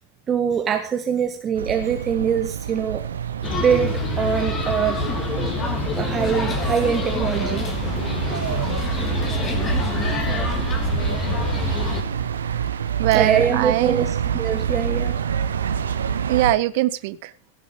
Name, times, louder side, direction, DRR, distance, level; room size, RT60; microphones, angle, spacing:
voice 1, 0.3-3.0 3.6-5.0 5.9-7.7 13.1-15.1, right 7 dB, 25° right, 4 dB, 1.5 m, -23 dB
sound 1, 1.5-16.5, right 8 dB, 65° right, 1.1 m, -27 dB
sound 2, 3.4-12.0, left 4 dB, 25° left, 3.3 m, -27 dB
voice 2, 13.0-14.0 16.3-17.3, right 16 dB, 50° right, 16 dB, 0.7 m, -21 dB
16.5 x 7.5 x 6.8 m, 0.40 s
figure-of-eight pair, 90°, 0 cm